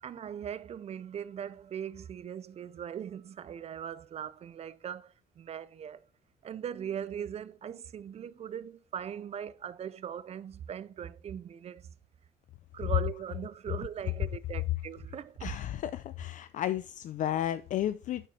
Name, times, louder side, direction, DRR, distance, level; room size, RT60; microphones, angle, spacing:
voice 1, 0.0-6.0 6.4-11.9 12.7-15.5, right 9 dB, 40° right, 0.5 m, -40 dB
voice 2, 15.4-18.3, left 11 dB, 50° left, 0.4 m, -33 dB
9.2 x 4.2 x 3.9 m
cardioid pair, 110°, 17 cm